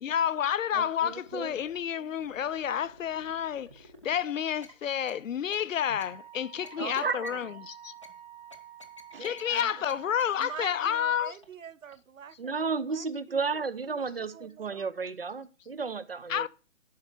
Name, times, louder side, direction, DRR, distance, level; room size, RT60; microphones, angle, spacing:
voice 1, 0.0-7.9 9.2-11.3 16.3-16.5, left 9 dB, 80° left, 0.5 m, -30 dB
voice 2, 0.7-1.6 5.9-6.0 6.8-7.3 9.1-9.7 12.4-16.5, right 4 dB, 50° right, 0.5 m, -34 dB
sound 1, 1.1-1.8 2.2-4.2 4.6-4.7 5.1-5.2 5.5-5.6 6.0-6.1 6.6-7.4 8.0-8.1 8.5-9.6 9.9-10.0 10.2-10.5 10.9-11.0 11.4-11.5 11.9-12.0, left 1 dB, 25° left, 0.6 m, -50 dB
Wind instrument woodwind instrument, 5.9-10.7, right 9 dB, 10° right, 1.1 m, -49 dB
voice 3, 6.8-7.4 10.4-13.7 14.3-14.9, right 7 dB, 80° right, 0.8 m, -44 dB
11.0 x 4.6 x 4.3 m
hypercardioid pair, 180°, 39 cm